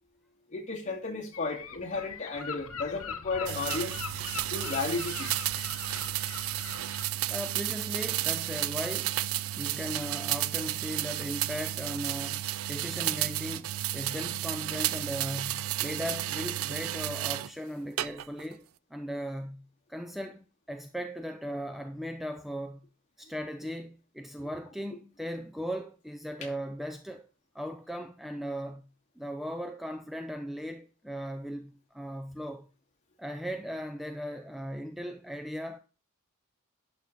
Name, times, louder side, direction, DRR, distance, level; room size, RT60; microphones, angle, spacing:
voice 1, 0.5-3.9 4.5-5.3, left 3 dB, 35° left, 2.5 m, -33 dB
Gull seagull, 1.3-7.1, left 7 dB, 75° left, 1.0 m, -41 dB
sound 1, 3.4-17.5 18.0-18.5, right 14 dB, 70° right, 0.4 m, -32 dB
voice 2, 7.3-9.2 9.6-12.4 12.7-22.8 23.2-27.3 27.5-28.8 29.2-32.7 33.2-35.8, equal, ahead, 0.5 m, -38 dB
11.5 x 6.2 x 4.2 m
head